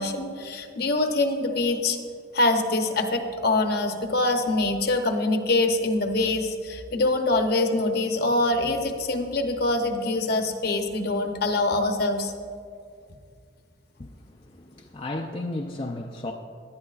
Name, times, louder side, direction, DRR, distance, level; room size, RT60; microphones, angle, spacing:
voice 1, 0.0-2.0 2.3-12.3, left 2 dB, 50° left, 5 dB, 0.9 m, -24 dB
voice 2, 14.5-16.3, left 2 dB, 30° left, 1 dB, 0.5 m, -33 dB
18.0 x 11.5 x 2.5 m, 2.3 s
head